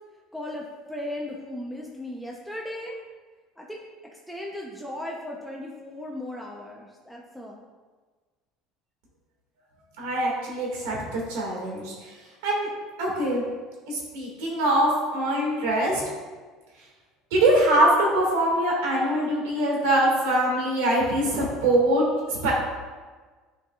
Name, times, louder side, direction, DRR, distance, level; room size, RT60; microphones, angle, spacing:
voice 1, 0.3-3.0 3.6-3.9 4.3-7.7, left 1 dB, 5° left, -2 dB, 0.8 m, -36 dB
voice 2, 10.0-12.1 12.4-12.7 13.0-13.4 13.9-16.0 17.3-22.5, right 1 dB, 90° right, -2 dB, 2.2 m, -23 dB
11.0 x 4.7 x 2.5 m, 1.4 s
supercardioid pair, 120°, 0 cm